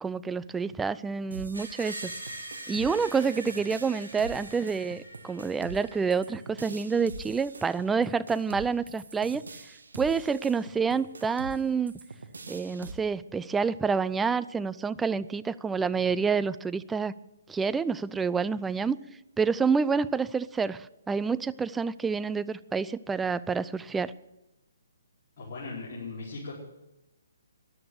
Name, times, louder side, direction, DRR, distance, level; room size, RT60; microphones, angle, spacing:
voice 1, 0.0-2.1 2.7-9.4 10.0-11.9 12.5-17.1 17.5-19.0 19.4-24.1, right 5 dB, 10° right, 15 dB, 0.4 m, -28 dB
sound 1, 1.3-12.9, right 3 dB, 70° right, 1.6 m, -44 dB
Screech, 1.5-6.5, right 1 dB, 85° right, 3.3 m, -43 dB
voice 2, 25.4-26.5, left 3 dB, 40° left, -7 dB, 4.9 m, -38 dB
13.5 x 11.0 x 8.2 m, 0.96 s
figure-of-eight pair, 130°, 0 cm